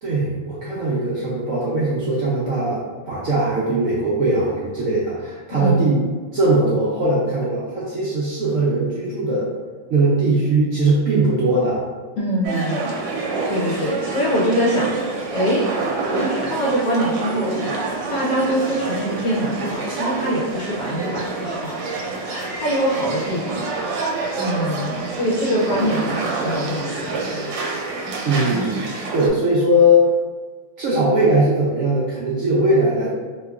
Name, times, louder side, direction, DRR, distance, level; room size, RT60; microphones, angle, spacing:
voice 1, 0.0-6.0 6.3-9.5 9.9-11.8 28.2-30.1 30.8-33.1, right 1 dB, 70° right, -7 dB, 0.8 m, -20 dB
voice 2, 5.5-5.8 12.2-12.9 13.5-14.9 15.3-15.7 16.1-21.8 22.3-23.7 24.4-27.2, equal, 65° left, -5 dB, 1.0 m, -23 dB
sound 1, 12.4-29.3, right 3 dB, 85° right, 1.3 m, -27 dB
3.6 x 2.9 x 2.3 m, 1.4 s
omnidirectional pair, 2.0 m